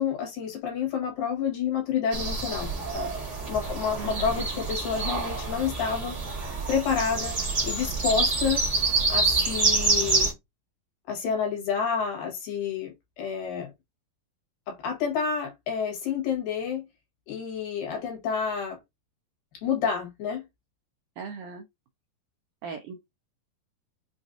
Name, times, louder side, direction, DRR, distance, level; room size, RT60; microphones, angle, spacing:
voice 1, 0.0-6.2 6.7-7.4 7.6-8.6 9.1-10.3 11.1-13.7 14.7-16.9 17.3-18.8 19.6-20.5, left 7 dB, 75° left, 2.9 m, -29 dB
sound 1, 2.1-10.3, right 3 dB, 45° right, 0.9 m, -27 dB
voice 2, 4.0-4.4 21.2-21.7 22.6-22.9, right 5 dB, 85° right, 1.7 m, -38 dB
6.0 x 2.5 x 2.5 m
omnidirectional pair, 4.1 m